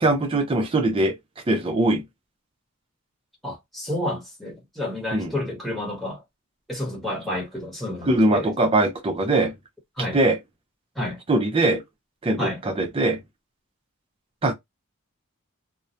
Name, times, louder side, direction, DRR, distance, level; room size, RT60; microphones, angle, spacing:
voice 1, 0.0-1.2 1.5-2.0 5.1-5.3 8.1-9.5 10.1-10.4 11.3-11.8 12.2-13.2 14.4-14.5, right 2 dB, 25° right, 0.4 m, -21 dB
voice 2, 3.4-6.2 6.7-8.5 10.0-10.2 10.9-11.2 12.4-12.6, left 1 dB, ahead, 0.9 m, -30 dB
2.2 x 2.1 x 2.6 m
head